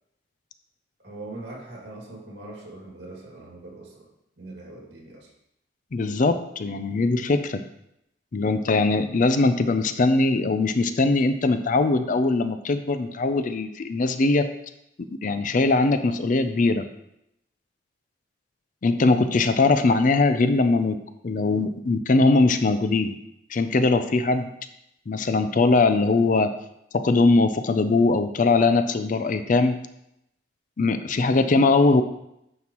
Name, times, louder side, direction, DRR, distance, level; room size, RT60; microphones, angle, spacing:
voice 1, 1.0-5.3, right 2 dB, 65° right, -3 dB, 2.3 m, -41 dB
voice 2, 5.9-7.6 8.3-14.5 15.0-16.9 18.8-23.1 23.5-24.5 25.1-26.5 26.9-29.8 30.8-32.0, left 3 dB, 45° left, 10 dB, 0.4 m, -21 dB
9.3 x 5.7 x 3.0 m, 0.81 s
head